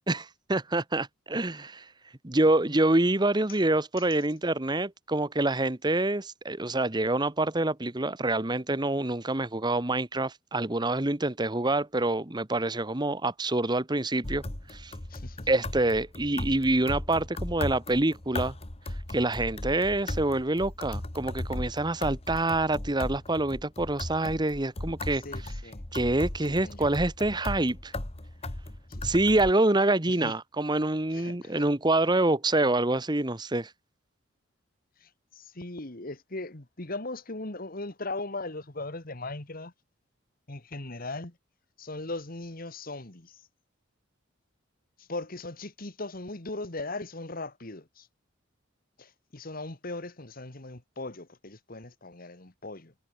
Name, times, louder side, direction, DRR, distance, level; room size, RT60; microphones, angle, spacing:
voice 1, 0.1-1.9 2.2-14.4 14.7-14.9 15.5-18.5 19.1-25.2 25.9-27.9 29.0-33.7, right 2 dB, 20° right, 1.2 m, -26 dB
sound 1, 14.2-29.5, left 1 dB, 30° left, 1.4 m, -37 dB
voice 2, 15.1-15.5 25.1-25.8 26.6-26.9 28.9-29.2 30.1-30.3 31.1-31.6 35.0-39.7 40.5-41.4 41.8-43.5 45.0-48.1 49.0-52.9, left 2 dB, 45° left, 2.0 m, -39 dB
head